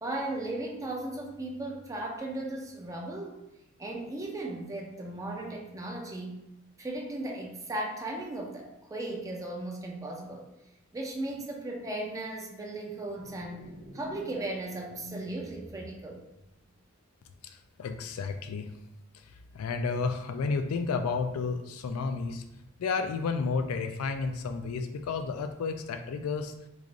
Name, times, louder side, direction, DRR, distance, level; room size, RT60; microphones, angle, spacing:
voice 1, 0.0-3.4 3.8-6.4 6.8-10.5 10.9-13.7 13.9-16.2, right 2 dB, 15° right, 0 dB, 0.4 m, -36 dB
sound 1, 13.0-16.7, equal, 45° right, 0.9 m, -47 dB
voice 2, 17.4-18.7 19.5-22.4 22.8-26.5, left 4 dB, 85° left, 7 dB, 0.3 m, -31 dB
3.2 x 2.5 x 3.7 m, 0.86 s
head